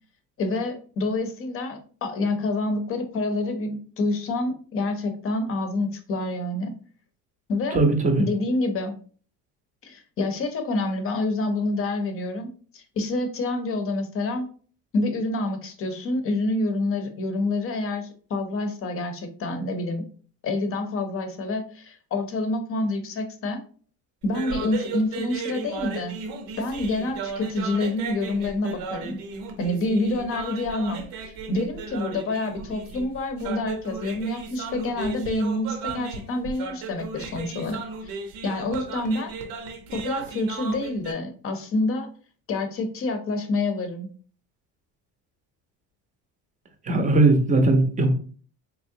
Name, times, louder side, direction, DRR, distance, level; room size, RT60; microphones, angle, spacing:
voice 1, 0.4-6.7 7.5-7.8 8.2-8.9 9.8-14.5 14.9-20.0 20.4-23.6 24.2-26.2 26.6-29.2 29.6-38.2 38.4-39.3 39.9-42.1 42.5-44.1, left 2 dB, 40° left, 7 dB, 0.7 m, -27 dB
voice 2, 7.7-8.2 46.9-48.1, right 2 dB, 20° right, 5 dB, 0.6 m, -19 dB
sound 1, 24.2-41.1, right 5 dB, 75° right, 0.8 m, -35 dB
3.6 x 3.0 x 2.7 m, 0.43 s
cardioid pair, 150°, 35 cm